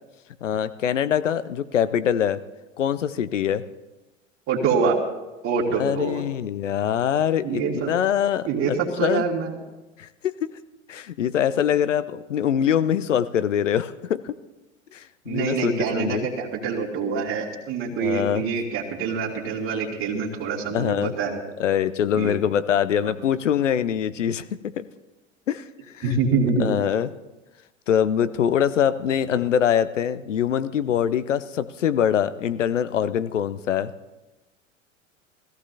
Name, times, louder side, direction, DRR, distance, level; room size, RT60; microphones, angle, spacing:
voice 1, 0.4-2.4 2.8-3.6 5.7-8.5 9.0-9.2 10.0-10.5 10.9-14.3 14.9-16.3 18.0-18.4 19.6-19.9 20.7-21.1 21.6-24.9 25.5-25.7 25.9-26.2 26.6-27.1 27.9-33.9, left 9 dB, 70° left, 14 dB, 0.7 m, -24 dB
voice 2, 4.5-5.0 5.4-6.2 7.4-7.9 8.5-9.6 15.3-21.4 22.1-22.3 23.0-23.1 26.0-26.7, right 5 dB, 35° right, -3 dB, 2.5 m, -25 dB
21.0 x 14.5 x 2.8 m, 1.1 s
figure-of-eight pair, 80°, 38 cm